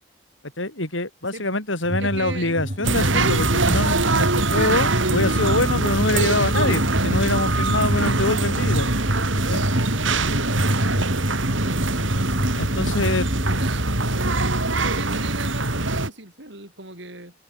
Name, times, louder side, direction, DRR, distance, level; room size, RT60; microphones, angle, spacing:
voice 1, 0.6-8.9 9.5-9.6 12.5-13.3, left 2 dB, 75° left, 6.5 m, -25 dB
sound 1, 1.8-13.7, equal, 40° right, 4.8 m, -28 dB
voice 2, 2.0-2.5 8.0-8.3 9.9-10.2 13.4-14.3 14.7-17.3, right 2 dB, 60° right, 7.4 m, -38 dB
sound 2, 2.8-16.1, right 2 dB, 75° right, 4.7 m, -23 dB
head